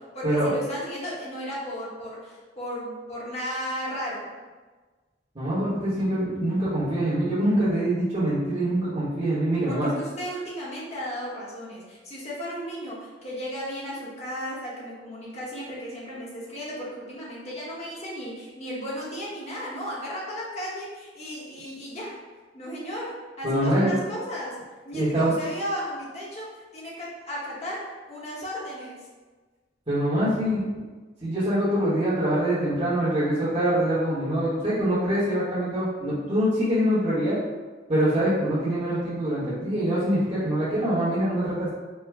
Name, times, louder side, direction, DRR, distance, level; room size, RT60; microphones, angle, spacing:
voice 1, 0.1-4.3 9.7-22.2 22.5-24.6 24.8-29.1, equal, 35° left, -6 dB, 1.0 m, -35 dB
voice 2, 5.3-9.9 23.4-24.0 24.9-25.3 29.9-30.6 31.2-37.4 37.9-41.7, right 1 dB, 30° right, -13 dB, 1.2 m, -24 dB
4.5 x 2.1 x 3.4 m, 1.3 s
head